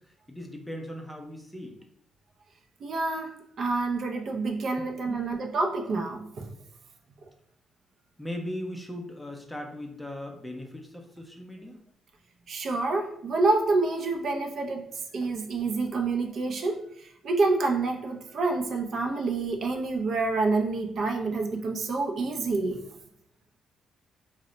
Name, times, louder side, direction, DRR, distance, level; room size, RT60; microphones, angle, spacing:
voice 1, 0.0-1.8 4.8-5.4 8.2-11.8, left 1 dB, 5° left, 2 dB, 0.5 m, -39 dB
voice 2, 2.8-6.5 12.5-14.9 15.1-22.8, right 3 dB, 60° right, 3 dB, 0.4 m, -28 dB
2.0 x 2.0 x 3.7 m, 0.68 s
cardioid pair, 90°, 0 cm